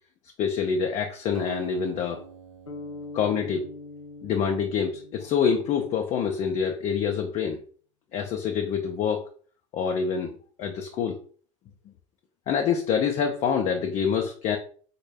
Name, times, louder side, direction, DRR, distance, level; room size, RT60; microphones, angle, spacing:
voice 1, 0.4-2.2 3.1-3.7 4.2-7.6 8.1-9.3 9.7-11.2 12.5-14.6, left 7 dB, 40° left, 3 dB, 0.5 m, -26 dB
Acoustic guitar, 1.3-4.9, right 6 dB, 85° right, 0.4 m, -46 dB
sound 1, 2.7-6.9, left 2 dB, 85° left, 0.5 m, -43 dB
3.9 x 2.2 x 3.3 m, 0.43 s
figure-of-eight pair, 75°, 16 cm